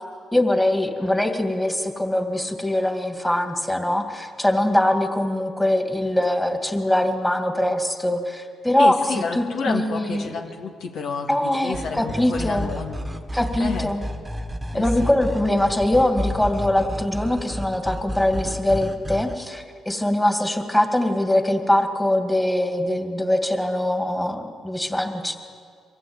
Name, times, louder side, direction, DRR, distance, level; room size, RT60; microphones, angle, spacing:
voice 1, 0.3-9.0 9.3-10.3 11.3-12.7 13.3-14.0 14.7-25.3, left 1 dB, 10° left, 4 dB, 2.4 m, -22 dB
voice 2, 8.8-13.0 13.6-13.9 14.7-15.1, left 5 dB, 70° left, 2 dB, 2.1 m, -30 dB
sound 1, 11.7-19.4, equal, 10° right, 1.6 m, -31 dB
23.5 x 15.5 x 9.0 m, 2.2 s
cardioid pair, 90°, 0 cm